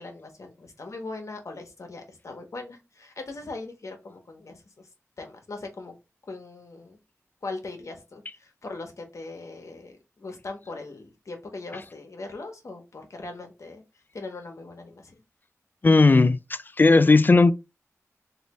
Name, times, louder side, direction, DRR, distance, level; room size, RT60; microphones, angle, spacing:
voice 1, 0.0-4.9 5.2-5.9 6.2-7.0 7.4-13.8 14.1-15.2, left 3 dB, 65° left, 0.9 m, -40 dB
voice 2, 15.8-16.4 16.8-17.5, left 3 dB, 35° left, 0.3 m, -16 dB
3.2 x 2.6 x 2.9 m
wide cardioid pair, 55°, 6 cm